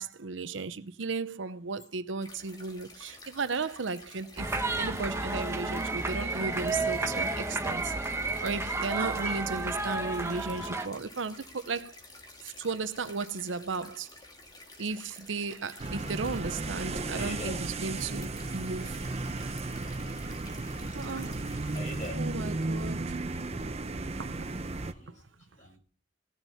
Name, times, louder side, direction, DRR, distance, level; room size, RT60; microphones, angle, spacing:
voice 1, 0.0-7.9 8.4-11.9 12.4-14.1 14.8-19.0 20.9-21.4 22.1-23.2 24.2-24.5 24.8-25.2, right 4 dB, 80° right, 0.8 m, -35 dB
sound 1, 2.2-22.1, left 2 dB, 20° left, 2.2 m, -51 dB
sound 2, 4.4-10.9, right 3 dB, 15° right, 1.3 m, -31 dB
sound 3, 15.8-24.9, right 2 dB, 35° right, 0.8 m, -34 dB
voice 2, 17.1-17.6 20.8-21.1 21.7-22.2 24.9-25.2 25.5-25.8, left 1 dB, 40° left, 5.5 m, -41 dB
17.0 x 7.2 x 5.7 m
head